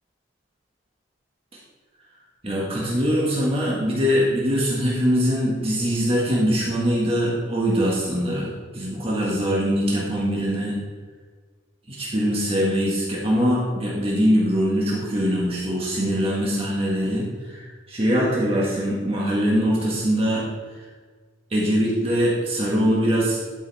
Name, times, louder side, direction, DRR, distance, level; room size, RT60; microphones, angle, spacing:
voice 1, 2.4-10.8 11.9-20.5 21.5-23.4, equal, 30° right, -5 dB, 1.7 m, -22 dB
11.5 x 5.5 x 4.2 m, 1.5 s
head